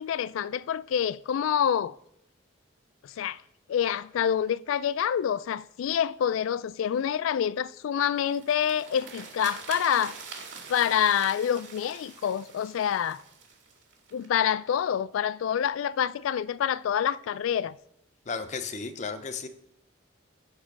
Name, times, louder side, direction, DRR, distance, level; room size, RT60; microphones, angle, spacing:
voice 1, 0.0-2.0 3.2-3.4 3.7-10.1 10.7-13.2 14.1-17.7, left 9 dB, 85° left, 0.3 m, -27 dB
sound 1, 8.2-14.3, right 5 dB, 65° right, 1.8 m, -44 dB
voice 2, 18.3-19.5, left 4 dB, 35° left, 0.6 m, -34 dB
10.0 x 4.4 x 5.9 m
head